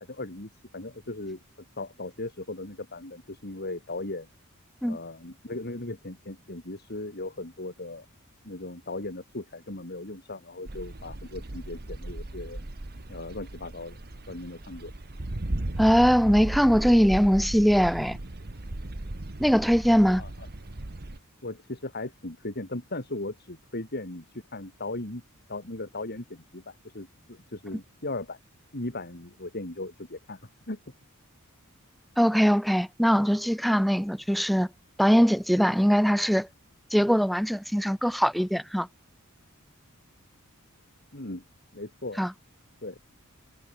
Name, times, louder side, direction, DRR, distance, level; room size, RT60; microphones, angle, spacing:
voice 1, 0.0-1.4 1.8-4.3 4.8-8.1 8.4-12.7 13.1-14.0 14.3-14.9 20.1-20.3 21.4-25.2 25.5-28.4 28.7-30.4 30.7-30.8 41.1-41.4 41.7-42.2 42.8-43.0, left 2 dB, 45° left, 3.5 m, -37 dB
sound 1, 10.7-21.2, right 1 dB, 45° right, 1.4 m, -36 dB
voice 2, 15.8-18.2 19.4-20.2 32.2-34.7 35.0-36.5 36.9-38.9 42.2-42.3, equal, ahead, 1.9 m, -21 dB
head